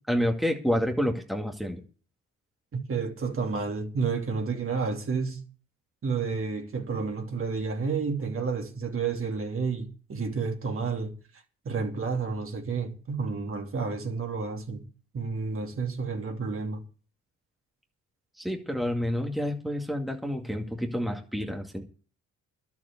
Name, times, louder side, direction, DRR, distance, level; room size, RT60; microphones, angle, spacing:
voice 1, 0.1-1.8 18.4-21.8, equal, ahead, 2.2 m, -29 dB
voice 2, 2.7-5.4 6.0-11.1 11.6-14.8 15.1-16.8, right 5 dB, 45° right, 2.9 m, -30 dB
12.0 x 7.2 x 8.3 m
cardioid pair, 90°, 30 cm